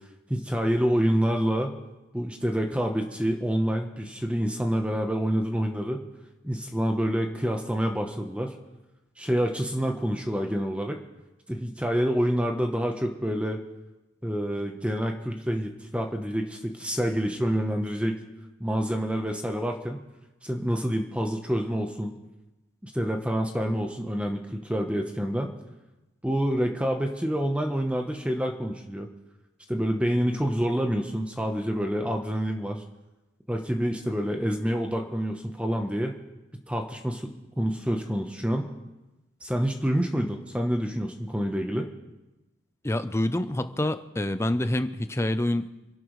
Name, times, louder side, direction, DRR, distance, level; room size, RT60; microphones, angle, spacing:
voice 1, 0.3-1.8 2.1-6.0 6.4-8.5 9.2-11.0 11.5-13.6 14.2-18.2 18.6-20.0 20.4-22.1 22.8-25.5 26.2-29.1 29.7-32.8 33.5-36.2 36.7-38.7 39.4-41.9, equal, 5° right, 3 dB, 0.9 m, -27 dB
voice 2, 42.8-45.7, left 1 dB, 15° left, 11 dB, 0.5 m, -27 dB
27.0 x 11.5 x 3.2 m, 1.0 s
head